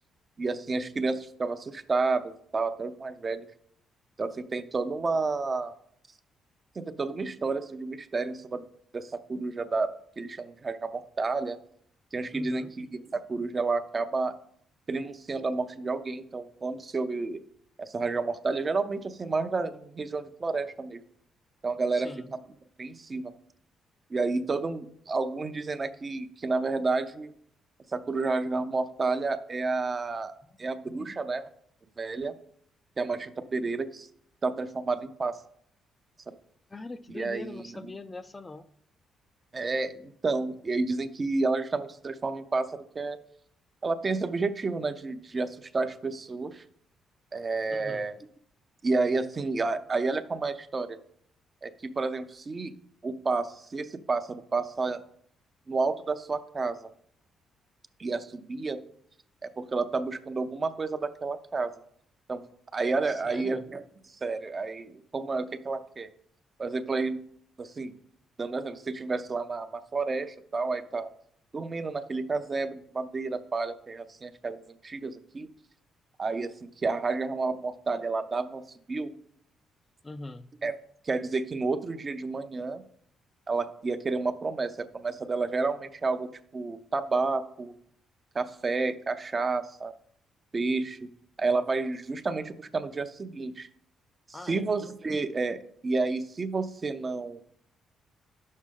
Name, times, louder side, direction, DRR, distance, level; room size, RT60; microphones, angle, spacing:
voice 1, 0.4-3.4 4.2-5.7 6.8-8.7 8.9-11.6 12.1-14.3 14.9-17.4 17.8-21.0 21.6-22.4 22.8-23.3 24.1-27.3 27.9-30.3 30.6-31.4 32.0-32.3 33.0-34.1 34.4-35.4 36.3-36.4 37.1-37.9 39.5-43.2 43.8-46.6 47.3-48.2 48.8-51.0 51.6-52.7 53.0-55.0 55.7-56.9 58.0-58.8 59.4-61.7 62.3-62.4 62.7-63.8 64.2-66.1 66.6-67.2 67.6-67.9 68.4-71.1 71.5-75.5 76.2-78.6 78.9-79.1 80.6-80.7 81.0-82.8 83.5-87.7 88.3-89.9 90.5-91.1 91.4-93.7 94.5-97.4, right 3 dB, 35° right, 9 dB, 0.6 m, -30 dB
voice 2, 12.3-12.7 21.9-22.3 36.7-38.7 47.7-48.1 63.0-63.7 80.0-80.5 94.3-94.7, left 2 dB, 25° left, 10 dB, 0.4 m, -42 dB
9.4 x 6.4 x 3.7 m, 0.67 s
cardioid pair, 90°, 0 cm